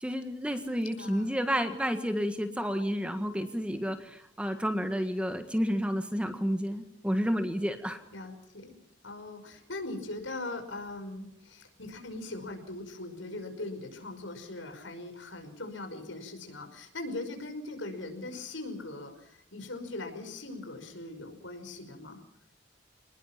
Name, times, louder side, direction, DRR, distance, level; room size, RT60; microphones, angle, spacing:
voice 1, 0.0-8.0, equal, 5° right, 7 dB, 1.7 m, -30 dB
voice 2, 1.0-1.4 8.1-8.8 9.0-22.2, left 2 dB, 85° left, 6 dB, 5.6 m, -40 dB
27.5 x 20.0 x 5.9 m, 0.74 s
head